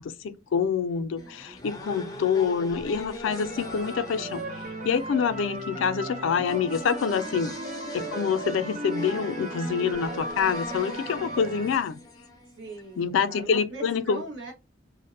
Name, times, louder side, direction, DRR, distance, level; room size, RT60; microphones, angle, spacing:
voice 1, 0.0-7.5 7.9-12.0 13.0-14.2, left 6 dB, 85° left, 0.3 m, -26 dB
voice 2, 0.9-1.6 8.0-8.3 12.6-14.5, right 2 dB, 70° right, 1.2 m, -41 dB
sound 1, 1.2-13.0, left 2 dB, 20° left, 0.4 m, -41 dB
sound 2, 3.2-11.8, right 1 dB, 40° right, 0.5 m, -36 dB
2.6 x 2.0 x 2.5 m
head